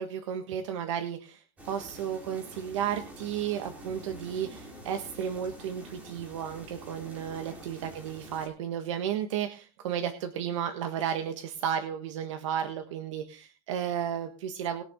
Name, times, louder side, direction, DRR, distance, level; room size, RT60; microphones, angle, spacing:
voice 1, 0.0-14.8, right 9 dB, 80° right, 6 dB, 1.5 m, -33 dB
sound 1, 1.6-8.5, right 1 dB, 10° right, 2.5 m, -47 dB
21.0 x 7.1 x 3.7 m, 0.34 s
supercardioid pair, 180°, 16 cm